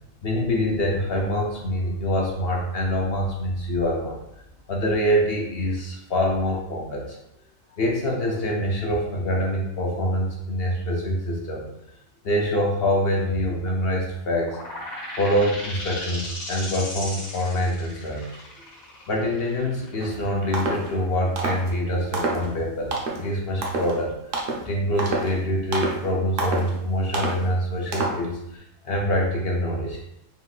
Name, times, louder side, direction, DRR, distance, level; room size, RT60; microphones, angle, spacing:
voice 1, 0.2-4.2 4.7-7.2 7.8-11.7 12.2-14.6 15.2-18.4 19.1-24.3 24.6-30.0, equal, 60° left, -1 dB, 0.7 m, -25 dB
sound 1, 14.4-21.8, left 1 dB, 75° left, 1.5 m, -37 dB
sound 2, 20.0-20.2 20.5-20.9 21.4-21.7 22.1-22.5 22.9-23.2 23.6-23.9 24.3-24.7 25.0-25.4 25.7-26.0 26.4-26.7 27.1-27.4 27.9-28.2, right 3 dB, 70° right, 1.1 m, -27 dB
4.0 x 3.8 x 2.3 m, 0.80 s
omnidirectional pair, 1.4 m